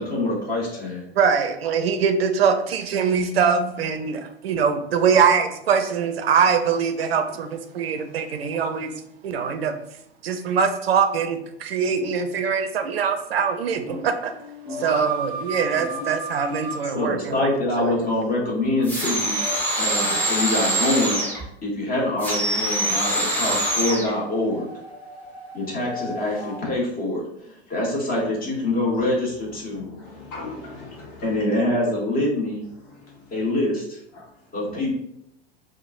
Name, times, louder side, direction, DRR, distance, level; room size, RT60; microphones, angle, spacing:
voice 1, 0.0-1.1 16.9-19.4 19.8-21.2 21.6-24.7 25.5-29.9 31.2-32.6 33.3-34.0 34.5-34.9, left 1 dB, 25° left, -3 dB, 1.4 m, -25 dB
voice 2, 1.1-8.9 9.2-9.7 10.2-14.3 14.8-17.5 17.8-17.9, right 6 dB, 70° right, 7 dB, 0.5 m, -22 dB
voice 3, 13.7-14.1 14.6-15.0 15.7-16.1 17.7-18.1 29.5-31.5 32.7-33.5 34.1-34.5, left 2 dB, 45° left, -3 dB, 1.5 m, -39 dB
sound 1, 14.3-16.8 19.1-21.0 23.0-26.6, right 1 dB, 80° left, 1.1 m, -36 dB
sound 2, 18.8-21.4 22.2-24.1, right 1 dB, 5° left, 0.9 m, -24 dB
4.5 x 2.4 x 2.5 m, 0.77 s
figure-of-eight pair, 90°, 32 cm